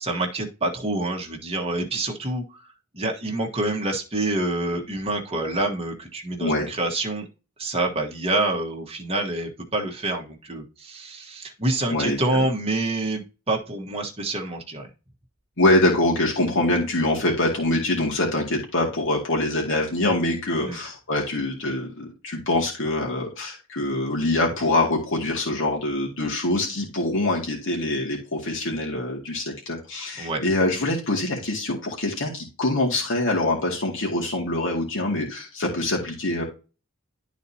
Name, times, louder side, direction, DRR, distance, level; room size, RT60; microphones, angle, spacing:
voice 1, 0.0-2.6 2.9-7.2 7.6-14.9 20.6-20.8 30.2-30.4, right 2 dB, 30° right, 1 dB, 1.3 m, -27 dB
voice 2, 11.9-12.5 15.6-36.4, left 2 dB, 60° left, -2 dB, 2.2 m, -24 dB
11.5 x 4.1 x 2.8 m, 0.31 s
head